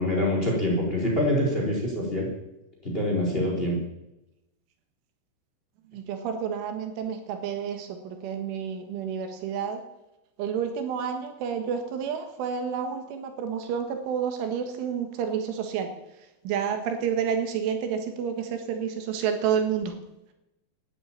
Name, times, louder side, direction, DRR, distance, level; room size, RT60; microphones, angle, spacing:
voice 1, 0.0-2.3 2.8-3.8, left 1 dB, 10° left, -2 dB, 4.0 m, -25 dB
voice 2, 5.9-9.8 10.4-15.9 16.4-20.0, right 7 dB, 80° right, 6 dB, 4.1 m, -29 dB
13.5 x 9.5 x 8.9 m, 0.92 s
omnidirectional pair, 5.5 m